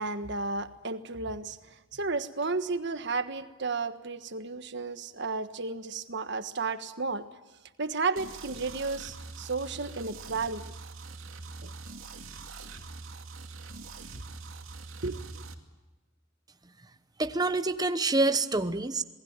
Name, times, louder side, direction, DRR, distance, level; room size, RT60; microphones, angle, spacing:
voice 1, 0.0-7.3 7.8-10.6 11.6-11.7 14.1-14.2 15.0-15.4, right 3 dB, 60° right, 10 dB, 1.5 m, -33 dB
sound 1, 8.2-15.5, right 3 dB, 80° right, 2.5 m, -44 dB
voice 2, 17.2-19.0, right 2 dB, 20° right, 10 dB, 1.0 m, -26 dB
27.0 x 19.5 x 8.9 m, 1.2 s
head